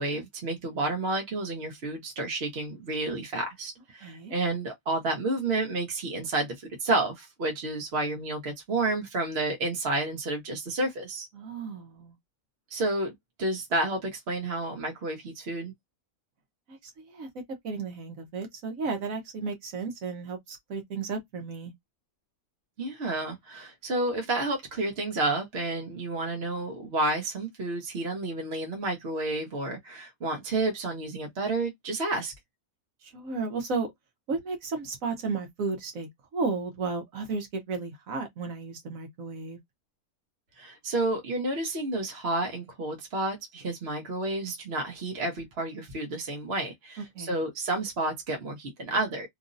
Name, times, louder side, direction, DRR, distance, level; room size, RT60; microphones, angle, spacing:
voice 1, 0.0-6.6 6.8-11.3 12.7-15.7 22.8-32.3 40.6-49.3, right 2 dB, 50° right, 1.0 m, -30 dB
voice 2, 4.0-4.3 11.3-12.1 16.7-17.3 17.6-21.7 33.0-33.9 34.3-39.6 47.1-47.4, right 4 dB, 70° right, 1.2 m, -33 dB
3.0 x 2.6 x 2.5 m
omnidirectional pair, 1.5 m